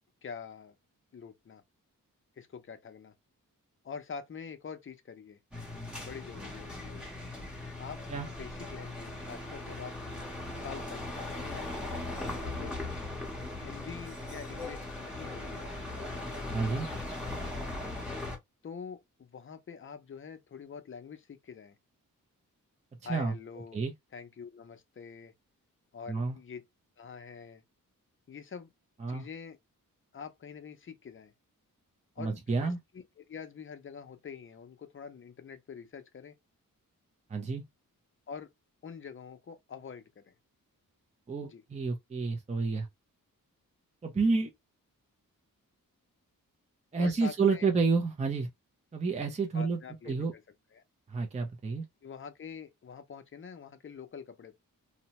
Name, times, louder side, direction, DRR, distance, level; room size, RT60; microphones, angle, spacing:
voice 1, 0.2-0.7 1.1-1.6 2.4-3.1 3.8-5.4 6.0-7.1 7.8-9.9 10.6-12.8 13.6-17.0 18.6-21.8 23.0-23.8 24.1-25.3 25.9-26.6 27.0-27.6 28.3-28.7 29.1-29.6 30.1-31.3 32.2-36.4 38.3-38.5 38.8-40.3 41.4-41.6 47.0-47.7 49.5-50.4 50.7-50.8 52.0-54.6, left 6 dB, 40° left, 0.5 m, -45 dB
sound 1, 5.5-18.4, left 2 dB, 5° right, 0.8 m, -39 dB
voice 2, 16.5-16.9 23.1-23.3 23.7-23.9 26.1-26.4 29.0-29.3 32.2-32.8 37.3-37.6 41.3-42.9 44.0-44.5 46.9-48.5 48.9-49.8 50.1-50.3 51.1-51.8, right 4 dB, 20° right, 0.4 m, -29 dB
2.7 x 2.1 x 2.9 m
wide cardioid pair, 160°, 34 cm